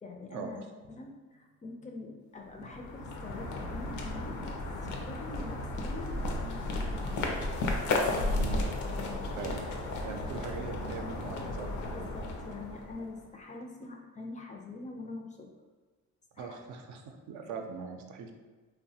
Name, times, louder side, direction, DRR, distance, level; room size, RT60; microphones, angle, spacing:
voice 1, 0.0-7.3 7.8-9.2 11.9-15.5 16.4-16.6, left 3 dB, 25° left, 2 dB, 0.3 m, -45 dB
sound 1, 2.5-13.2, left 2 dB, 75° left, 0.5 m, -34 dB
voice 2, 8.3-8.6 9.4-9.6 10.0-11.7 16.4-18.3, right 5 dB, 75° right, 4 dB, 0.4 m, -41 dB
3.1 x 2.1 x 2.7 m, 1.3 s
cardioid pair, 90°, 30 cm